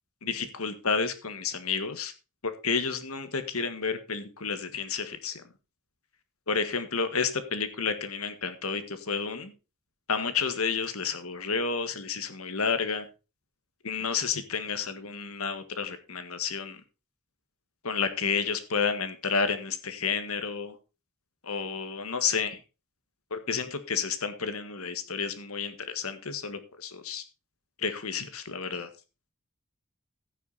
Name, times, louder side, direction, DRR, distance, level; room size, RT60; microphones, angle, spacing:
voice 1, 0.2-2.1 2.4-5.4 6.5-9.5 10.1-13.1 13.8-16.8 17.8-20.8 21.4-22.6 23.3-27.2 27.8-28.9, left 5 dB, 80° left, 10 dB, 1.7 m, -31 dB
15.5 x 6.7 x 4.1 m, 0.32 s
head